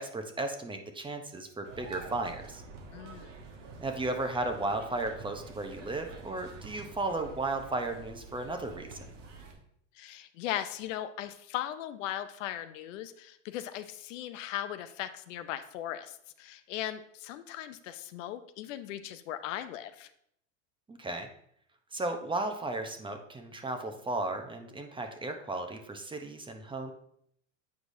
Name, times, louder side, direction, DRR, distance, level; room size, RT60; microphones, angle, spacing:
voice 1, 0.0-2.6 3.8-9.1 20.9-21.3 21.9-26.9, right 2 dB, 15° right, 5 dB, 0.7 m, -35 dB
sound 1, 1.6-9.5, right 3 dB, 85° right, 1.2 m, -48 dB
voice 2, 2.9-3.3 10.0-20.1, left 12 dB, 80° left, 11 dB, 0.6 m, -38 dB
8.3 x 4.7 x 2.6 m, 0.70 s
supercardioid pair, 105°, 37 cm